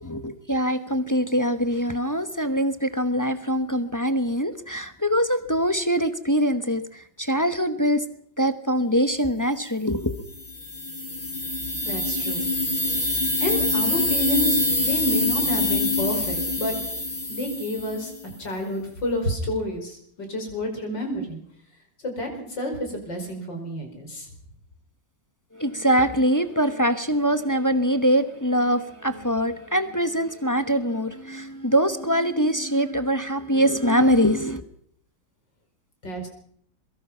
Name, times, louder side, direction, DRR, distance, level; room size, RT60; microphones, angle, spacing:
voice 1, 0.0-8.0 8.4-10.3 25.5-34.6, equal, 15° left, 10 dB, 0.8 m, -23 dB
sound 1, 10.3-18.2, left 2 dB, 85° left, 7.5 m, -25 dB
voice 2, 11.8-12.4 13.4-16.8 17.3-18.1 18.4-21.4 22.0-24.3 36.0-36.3, equal, 65° left, 3 dB, 5.7 m, -29 dB
23.5 x 22.0 x 5.8 m, 0.67 s
omnidirectional pair, 2.1 m